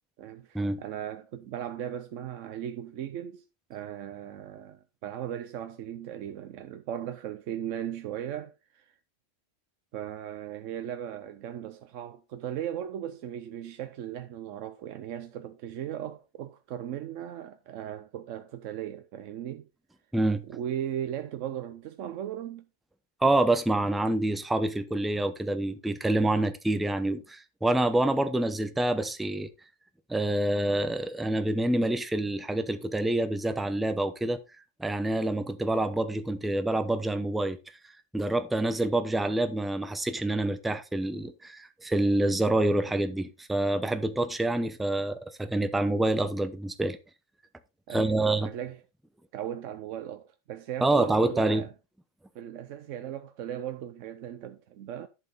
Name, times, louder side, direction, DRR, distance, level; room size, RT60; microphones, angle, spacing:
voice 1, 0.2-3.4 3.7-9.0 9.9-19.7 20.5-22.7 47.9-48.8 49.3-51.7 52.3-55.1, right 10 dB, 85° right, 1.0 m, -37 dB
voice 2, 23.2-29.5 30.1-34.4 34.8-37.6 38.1-47.0 47.9-48.5 50.8-51.6, right 1 dB, ahead, 0.5 m, -27 dB
11.0 x 5.7 x 4.0 m
omnidirectional pair, 1.3 m